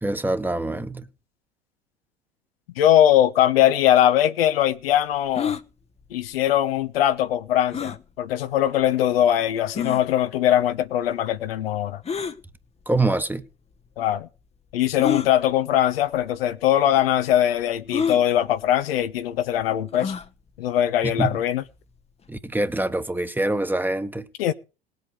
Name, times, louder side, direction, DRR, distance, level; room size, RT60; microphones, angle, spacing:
voice 1, 0.0-1.1 12.9-13.4 21.2-21.3 22.3-24.2, right 2 dB, 5° right, 1.4 m, -25 dB
voice 2, 2.8-5.5 6.1-12.0 14.0-14.3 14.7-20.1 20.6-21.6 24.4-24.5, left 11 dB, 70° left, 1.1 m, -21 dB
sound 1, 5.3-5.6 7.7-8.0 8.8-8.9 9.8-10.0 12.0-12.4 13.4-13.5 15.0-15.3 16.2-16.4 16.6-16.7 17.9-18.2 19.9-20.3, left 7 dB, 20° left, 1.0 m, -27 dB
18.5 x 8.3 x 6.5 m
hypercardioid pair, 75°, 31 cm